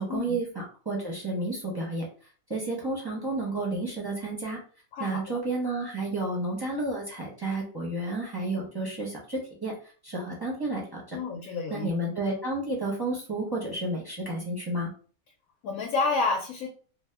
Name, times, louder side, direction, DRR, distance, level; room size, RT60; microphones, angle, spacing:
voice 1, 0.0-2.0 2.5-4.6 5.0-11.2 11.7-14.9, right 2 dB, 25° right, -4 dB, 0.6 m, -31 dB
voice 2, 4.9-5.4 11.1-11.9 15.6-16.7, left 4 dB, 75° left, 2 dB, 1.0 m, -29 dB
2.7 x 2.1 x 3.3 m, 0.41 s
omnidirectional pair, 1.6 m